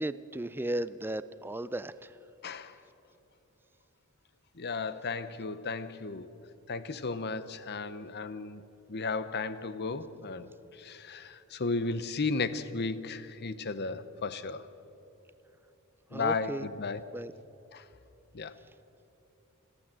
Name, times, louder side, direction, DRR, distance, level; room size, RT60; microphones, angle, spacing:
voice 1, 0.0-1.9 16.1-16.7 17.1-17.3, right 1 dB, 10° right, 0.4 m, -35 dB
voice 2, 2.4-2.8 4.5-6.3 6.7-8.6 8.9-14.7 16.1-17.1 17.7-17.8 18.3-18.5, left 4 dB, 50° left, 0.8 m, -34 dB
29.5 x 11.5 x 7.6 m
head